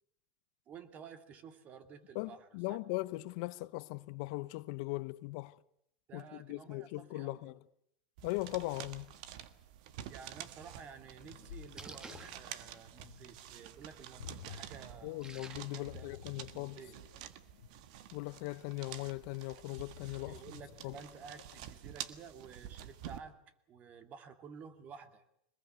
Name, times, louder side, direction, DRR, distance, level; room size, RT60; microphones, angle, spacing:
voice 1, 0.7-2.8 6.1-7.5 10.1-15.2 15.7-16.2 16.5-17.0 20.2-23.4 23.7-25.2, right 6 dB, 40° right, 2.4 m, -52 dB
voice 2, 2.1-5.5 6.1-7.6 8.2-9.1 15.0-16.8 18.1-20.4 20.8-20.9, left 22 dB, 65° left, 0.8 m, -39 dB
sound 1, 8.2-23.2, right 11 dB, 65° right, 1.6 m, -49 dB
Ocean, 11.0-21.8, left 10 dB, 85° left, 1.5 m, -54 dB
Splash splatter, 11.0-16.1, right 3 dB, 20° right, 1.7 m, -55 dB
23.0 x 20.5 x 8.1 m
hypercardioid pair, 110°, 4 cm